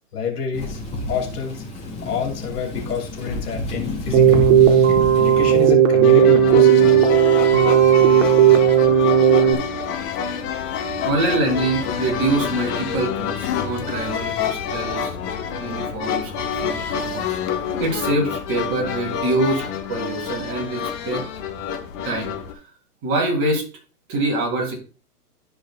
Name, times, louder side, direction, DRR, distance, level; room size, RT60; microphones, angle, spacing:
voice 1, 0.1-0.8 1.1-1.6 2.0-7.0, left 6 dB, 70° left, 1 dB, 2.7 m, -28 dB
Thunder / Rain, 0.5-5.7, left 1 dB, 15° left, 2.0 m, -30 dB
Keyboard (musical), 4.1-9.5, right 9 dB, 50° right, 1.4 m, -14 dB
sound 1, 6.0-22.5, left 7 dB, 35° left, 1.2 m, -27 dB
voice 2, 11.0-15.2 15.6-19.6 19.9-21.2 22.0-22.3 23.0-23.6 24.1-24.7, right 2 dB, 25° right, -2 dB, 3.4 m, -25 dB
13.5 x 4.9 x 2.4 m, 0.35 s
hypercardioid pair, 135°, 47 cm